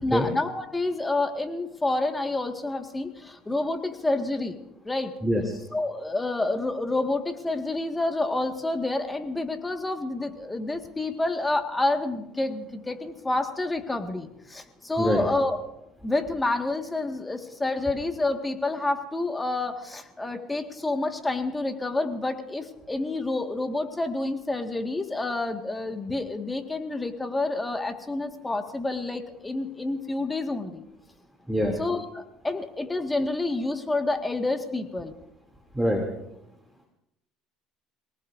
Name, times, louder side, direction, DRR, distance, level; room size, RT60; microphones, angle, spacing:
voice 1, 0.0-4.6 4.9-5.1 5.7-15.6 16.0-30.8 31.8-35.1, left 2 dB, 15° left, 5 dB, 1.8 m, -28 dB
voice 2, 5.2-5.6 15.0-15.2 31.5-31.8 35.7-36.0, equal, 5° right, 0 dB, 2.8 m, -24 dB
28.5 x 19.0 x 2.6 m, 0.83 s
supercardioid pair, 110°, 0 cm